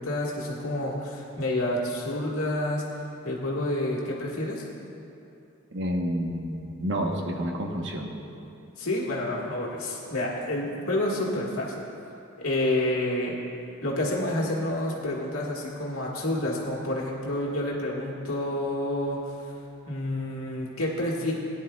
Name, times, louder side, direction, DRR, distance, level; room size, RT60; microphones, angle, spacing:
voice 1, 0.0-2.9 3.2-4.6 8.8-11.8 12.4-13.4 13.8-19.2 19.5-19.6 19.8-21.3, left 1 dB, 80° left, -3 dB, 1.7 m, -29 dB
voice 2, 5.7-8.2, equal, 60° right, 1 dB, 1.1 m, -29 dB
17.5 x 10.0 x 2.3 m, 2.7 s
head